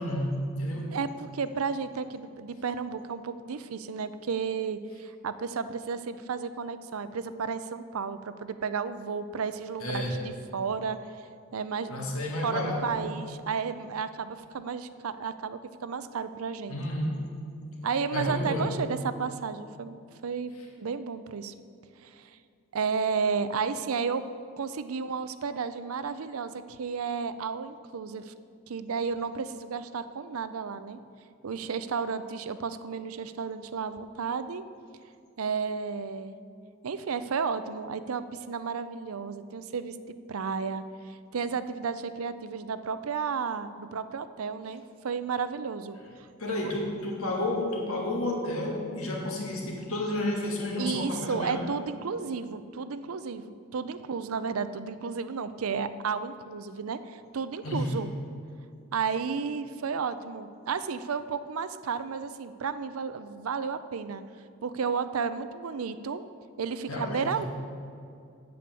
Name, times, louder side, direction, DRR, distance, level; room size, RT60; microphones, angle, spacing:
voice 1, 0.0-0.9 9.8-10.2 11.9-13.0 16.7-17.2 18.1-18.7 46.4-51.7 57.6-57.9 66.9-67.5, left 1 dB, 90° left, -1 dB, 2.3 m, -31 dB
voice 2, 0.9-10.2 10.5-11.0 11.5-12.2 12.4-16.7 17.8-20.0 20.2-20.5 20.8-21.5 22.0-22.3 22.7-24.2 24.6-28.3 28.7-31.0 31.4-34.6 35.4-36.3 36.8-40.0 40.3-46.0 46.4-46.5 50.7-58.1 58.9-64.2 64.6-66.2 66.6-67.5, right 5 dB, 90° right, 12 dB, 0.5 m, -32 dB
8.6 x 8.4 x 6.9 m, 2.4 s
head